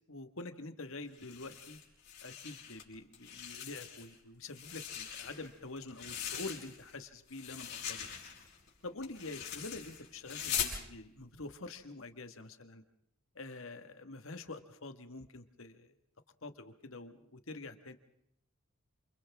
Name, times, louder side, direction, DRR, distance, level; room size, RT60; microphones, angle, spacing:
voice 1, 0.1-1.8 2.2-8.1 8.8-12.8 13.4-15.9 16.4-17.9, left 2 dB, 70° left, 8 dB, 1.8 m, -46 dB
sound 1, 1.1-2.8 3.1-4.1 4.5-7.0 7.3-10.8, left 9 dB, 50° left, 5.5 m, -41 dB
28.5 x 28.0 x 3.6 m, 0.75 s
head